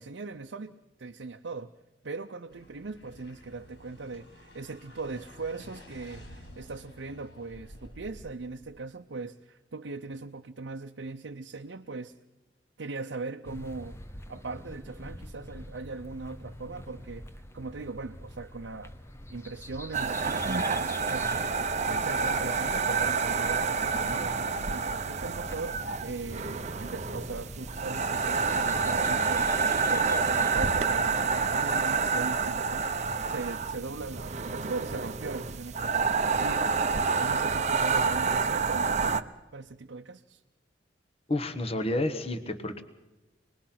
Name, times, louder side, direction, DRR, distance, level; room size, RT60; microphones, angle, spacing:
voice 1, 0.0-1.7 2.0-12.1 12.8-14.0 14.3-17.2 17.5-18.9 19.3-29.5 29.9-32.9 33.2-36.7 37.2-40.4, right 3 dB, 75° right, 4 dB, 0.7 m, -39 dB
sound 1, 2.5-8.8, equal, 70° left, 3.7 m, -51 dB
sound 2, 13.4-31.6, left 1 dB, 15° left, 0.9 m, -45 dB
sound 3, 19.9-39.2, right 5 dB, 40° right, 0.7 m, -28 dB
voice 2, 41.3-42.8, left 1 dB, 35° left, 10 dB, 1.3 m, -30 dB
25.5 x 20.5 x 5.9 m, 1.0 s
head